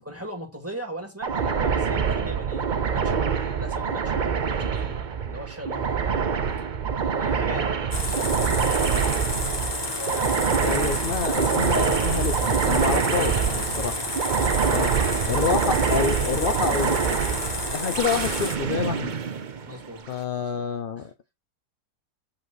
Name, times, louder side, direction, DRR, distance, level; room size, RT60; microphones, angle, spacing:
voice 1, 0.0-3.2 3.6-6.0 7.2-9.1 10.0-10.7 13.2-13.5 14.3-15.8 16.7-17.0 17.8-18.1 19.7-20.0 20.4-20.5 21.0-21.1, right 1 dB, 10° right, 2.3 m, -38 dB
sound 1, 1.2-20.1, right 6 dB, 50° right, 0.5 m, -25 dB
sound 2, 7.9-18.6, left 2 dB, 15° left, 1.1 m, -31 dB
voice 2, 10.6-14.0 14.7-14.9 15.3-17.0 17.7-19.1 20.1-21.1, left 6 dB, 90° left, 0.4 m, -28 dB
7.9 x 4.3 x 4.7 m
omnidirectional pair, 1.8 m